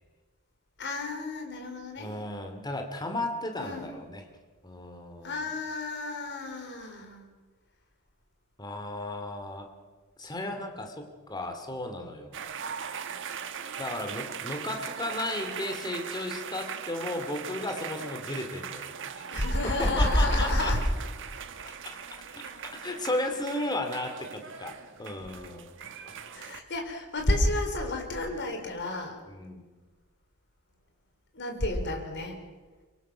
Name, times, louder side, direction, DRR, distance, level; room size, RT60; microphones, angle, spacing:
voice 1, 0.8-2.2 3.6-3.9 5.2-7.3 19.3-20.8 21.7-21.8 26.3-29.2 31.3-32.4, left 1 dB, 55° left, 4 dB, 4.0 m, -30 dB
voice 2, 2.0-4.2 4.6-5.5 8.6-9.7 10.2-12.4 13.8-18.9 19.8-20.7 21.8-22.0 22.4-22.5 22.8-25.7 26.0-26.1 28.2-28.4 29.3-29.6, left 1 dB, 20° left, 5 dB, 2.5 m, -35 dB
sound 1, 12.3-26.6, right 7 dB, 55° right, 1.4 m, -40 dB
25.0 x 22.5 x 6.2 m, 1.3 s
head